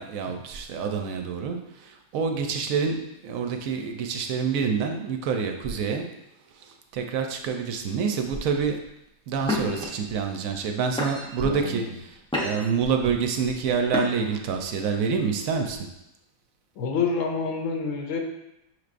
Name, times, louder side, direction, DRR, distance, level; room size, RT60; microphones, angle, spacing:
voice 1, 0.0-6.0 6.9-8.8 9.3-15.8, right 6 dB, 75° right, 4 dB, 1.0 m, -27 dB
sound 1, 8.8-8.9 9.4-9.9 10.5-10.7 11.0-11.5 12.0-12.8 13.9-14.4, left 1 dB, 10° left, 0.4 m, -29 dB
voice 2, 11.4-11.9 16.8-18.2, left 5 dB, 70° left, 2 dB, 0.9 m, -28 dB
6.0 x 3.3 x 2.5 m, 0.86 s
omnidirectional pair, 1.5 m